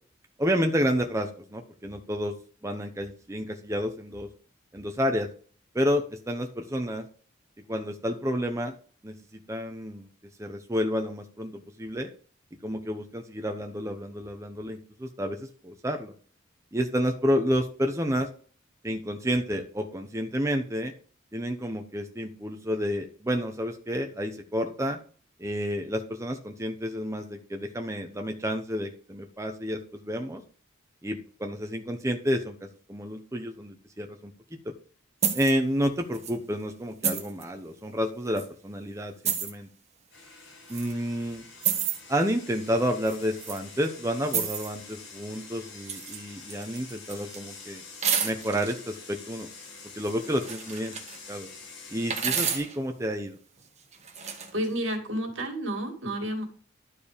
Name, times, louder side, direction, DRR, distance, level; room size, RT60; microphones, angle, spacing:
voice 1, 0.4-2.3 2.6-4.3 4.7-5.3 5.7-7.1 7.7-8.7 9.0-10.1 10.4-12.1 12.6-16.1 16.7-18.3 18.8-20.9 21.3-25.0 25.4-30.4 31.0-32.6 32.9-34.3 34.6-34.7 35.3-39.1 39.4-39.7 40.7-41.4 42.1-47.8 48.2-49.5 49.9-50.9 51.3-51.5 51.9-53.4, equal, 15° right, 4 dB, 0.8 m, -30 dB
sound 1, 35.2-35.5 36.1-36.3 37.0-37.4 38.4-38.5 39.2-39.5 40.7-40.9 41.6-42.0 43.1-43.6 44.3-44.7 45.8-46.2 46.5-47.4 48.0-48.7 50.0-51.2 52.1-52.8 53.9-54.5, right 7 dB, 35° right, 1.5 m, -30 dB
sound 2, 40.1-52.6, left 4 dB, 60° left, 5.4 m, -46 dB
voice 2, 54.5-56.5, equal, 70° right, 3 dB, 2.5 m, -30 dB
12.0 x 4.9 x 5.1 m, 0.43 s
head